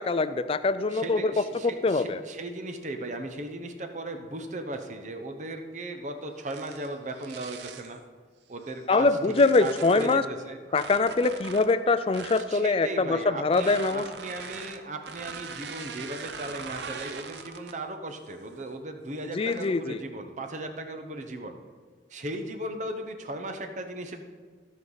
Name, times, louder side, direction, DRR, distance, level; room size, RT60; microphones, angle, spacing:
voice 1, 0.0-2.2 8.9-10.2 10.7-14.0 19.3-20.0, left 3 dB, 30° left, 12 dB, 0.4 m, -24 dB
voice 2, 0.9-8.0 8.5-9.1 9.4-10.6 12.3-21.6 22.1-24.2, right 2 dB, 40° right, 6 dB, 0.9 m, -37 dB
sound 1, 6.4-8.0 8.6-10.3 10.7-12.5 13.4-17.9 18.3-18.6 19.3-19.8, right 5 dB, 70° right, 0.7 m, -42 dB
15.5 x 5.5 x 4.0 m, 1.5 s
head